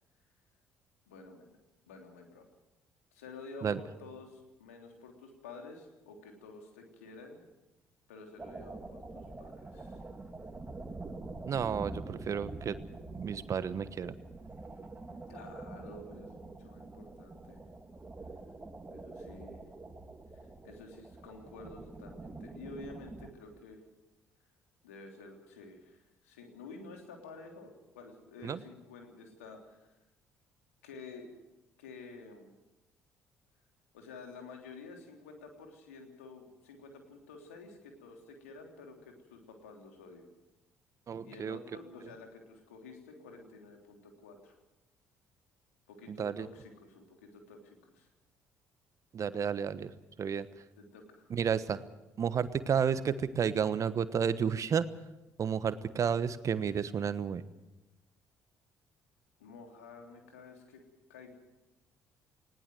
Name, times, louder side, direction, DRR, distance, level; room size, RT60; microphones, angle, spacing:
voice 1, 1.1-1.6 1.9-2.4 3.1-7.4 8.1-10.0 15.3-17.6 18.9-19.6 20.6-23.8 24.8-29.9 30.8-31.3 31.8-32.5 33.9-40.3 41.2-44.6 45.9-48.1 49.3-49.4 50.8-51.4 59.4-60.8 61.1-61.3, left 3 dB, 80° left, 3 dB, 3.3 m, -50 dB
sound 1, 8.4-23.3, right 2 dB, 20° right, 2.9 m, -46 dB
voice 2, 11.4-12.8 13.1-14.1 28.4-28.6 41.1-41.6 46.1-46.5 49.1-49.9 50.2-50.5 51.3-51.8 52.2-54.8 55.4-57.4, right 7 dB, 45° right, 14 dB, 1.2 m, -31 dB
20.0 x 18.5 x 7.8 m, 1.0 s
hypercardioid pair, 50°, 8 cm